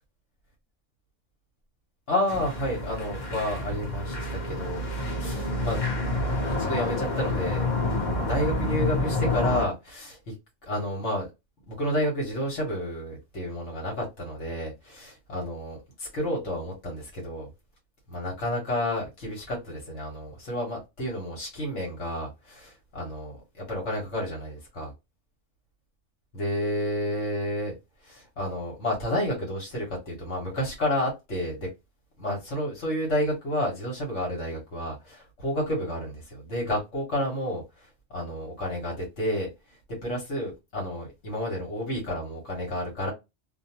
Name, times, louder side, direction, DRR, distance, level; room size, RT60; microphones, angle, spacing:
voice 1, 2.1-5.8 6.6-7.7 8.1-10.3 10.7-11.3 11.7-17.5 18.1-24.9 26.3-27.8 28.0-31.7 32.2-43.1, left 1 dB, 70° left, 1.4 m, -30 dB
sound 1, 2.3-9.7, left 2 dB, 40° left, 1.0 m, -28 dB
2.9 x 2.1 x 2.8 m
omnidirectional pair, 1.3 m